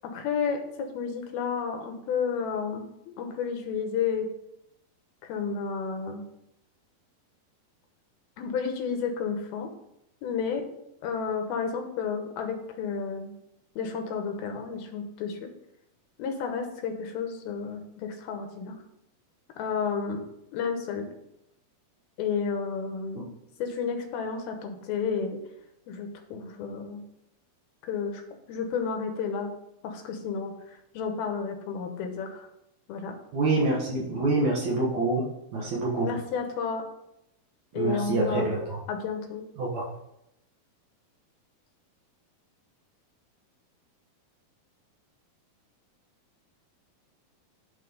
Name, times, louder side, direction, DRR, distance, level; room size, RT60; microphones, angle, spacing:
voice 1, 0.0-4.3 5.2-6.2 8.4-9.7 10.2-10.6 11.0-13.3 13.8-15.5 16.2-18.8 19.6-20.2 20.5-21.1 22.2-23.3 23.6-25.4 25.9-27.0 27.8-28.2 28.5-29.5 29.8-32.5 32.9-33.2 36.0-36.8 37.7-38.5 38.9-39.5, left 6 dB, 80° left, 5 dB, 3.0 m, -31 dB
voice 2, 33.3-35.2 35.5-36.1 37.8-38.8 39.6-39.8, right 2 dB, 60° right, -4 dB, 2.5 m, -26 dB
10.0 x 4.2 x 5.4 m, 0.82 s
omnidirectional pair, 4.3 m